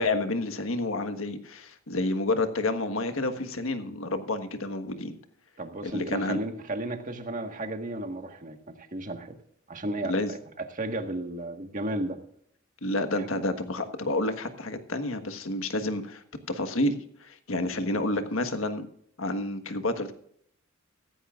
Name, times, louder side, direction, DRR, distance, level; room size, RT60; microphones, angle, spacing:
voice 1, 0.0-5.1 5.8-6.4 10.0-10.3 12.8-16.2 16.5-18.9 19.2-20.1, left 2 dB, 80° left, 8 dB, 1.5 m, -29 dB
voice 2, 5.6-9.3 9.7-12.2 13.1-13.3, right 1 dB, 40° right, 5 dB, 1.6 m, -34 dB
15.5 x 15.0 x 2.5 m, 0.67 s
head